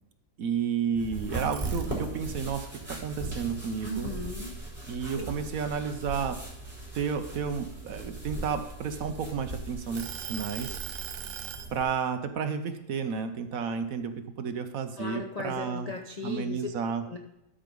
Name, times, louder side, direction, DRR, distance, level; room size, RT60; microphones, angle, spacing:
voice 1, 0.4-4.1 4.9-6.4 6.9-10.8 11.7-15.9 16.2-17.0, right 6 dB, 60° right, 8 dB, 1.0 m, -32 dB
sound 1, 0.9-11.8, right 2 dB, 5° right, 3.4 m, -38 dB
sound 2, 1.5-2.4 2.8-4.6 5.1-5.3 5.8-7.6 8.3-9.4 10.0-11.7, right 9 dB, 85° right, 1.5 m, -40 dB
voice 2, 3.8-4.5 4.8-5.3 15.0-16.7 17.1-17.2, left 2 dB, 65° left, 2 dB, 0.4 m, -37 dB
13.0 x 4.7 x 5.3 m, 0.87 s
omnidirectional pair, 2.0 m